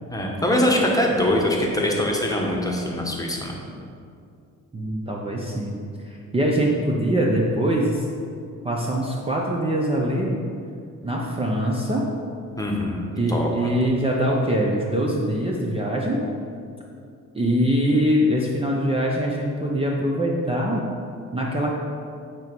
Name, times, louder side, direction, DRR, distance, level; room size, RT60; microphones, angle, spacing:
voice 1, 0.1-3.6 12.6-13.8, left 1 dB, 10° left, -1 dB, 1.2 m, -23 dB
voice 2, 4.7-5.8 6.3-8.1 8.6-10.4 11.0-12.0 13.1-16.2 17.3-20.8 21.3-21.7, equal, 20° right, -2 dB, 0.8 m, -23 dB
8.8 x 3.1 x 5.2 m, 2.4 s
cardioid pair, 90°, 30 cm